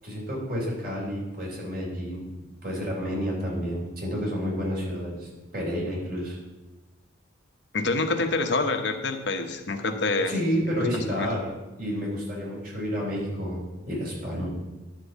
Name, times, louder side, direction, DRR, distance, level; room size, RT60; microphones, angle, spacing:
voice 1, 0.0-2.3 2.6-6.4 10.3-11.5 11.8-14.5, equal, 50° right, -3 dB, 3.6 m, -30 dB
voice 2, 7.7-10.3 10.9-11.3, left 3 dB, 65° left, 5 dB, 0.9 m, -26 dB
11.5 x 4.5 x 7.2 m, 1.2 s
head